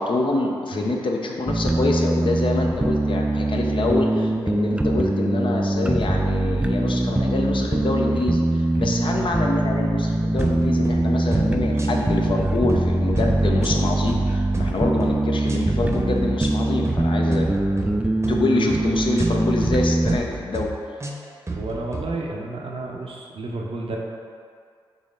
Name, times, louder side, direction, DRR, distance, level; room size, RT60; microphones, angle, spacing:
voice 1, 0.0-17.5 18.3-20.7, left 2 dB, 55° left, 0 dB, 0.6 m, -26 dB
sound 1, 1.5-20.2, right 1 dB, 10° right, 0.3 m, -22 dB
sound 2, 10.4-11.0 11.3-11.5 11.8-12.3 12.7-12.9 13.2-14.3 14.5-15.1 15.5-15.6 15.9-16.5 16.8-17.0 17.3-17.9 18.2-18.4 18.7-19.3 19.6-19.8 20.1-20.7 21.0-22.0, right 3 dB, 30° right, 0.8 m, -31 dB
voice 2, 21.5-24.0, right 2 dB, 65° right, -1 dB, 0.7 m, -31 dB
4.1 x 3.0 x 3.8 m, 2.2 s
supercardioid pair, 40°, 10 cm